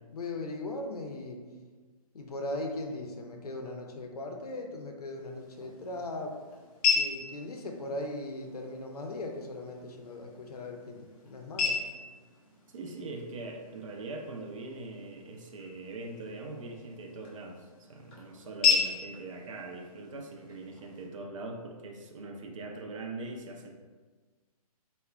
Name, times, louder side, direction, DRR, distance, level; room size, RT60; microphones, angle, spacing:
voice 1, 0.1-1.4 2.1-6.4 6.9-11.8, left 2 dB, 75° left, 2 dB, 0.5 m, -38 dB
sound 1, 5.1-21.1, left 5 dB, 15° left, 0.3 m, -35 dB
voice 2, 12.7-23.7, right 2 dB, 55° right, 1 dB, 0.4 m, -42 dB
3.5 x 2.1 x 2.3 m, 1.4 s
figure-of-eight pair, 135°, 20 cm